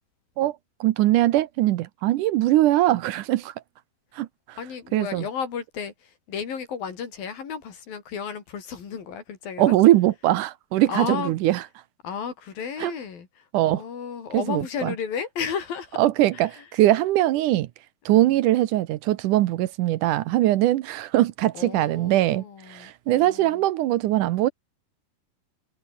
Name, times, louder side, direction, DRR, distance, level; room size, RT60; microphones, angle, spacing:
voice 1, 0.4-3.5 4.1-4.6 4.9-5.2 9.6-11.6 12.8-12.9 13.5-13.8 14.3-14.9 16.0-17.7 18.1-24.5, right 15 dB, 75° right, 2.2 m, -21 dB
voice 2, 4.6-9.8 10.9-11.3 12.0-16.0 16.3-16.7 18.1-18.4 21.5-23.6, left 7 dB, 90° left, 5.5 m, -33 dB
omnidirectional pair, 4.0 m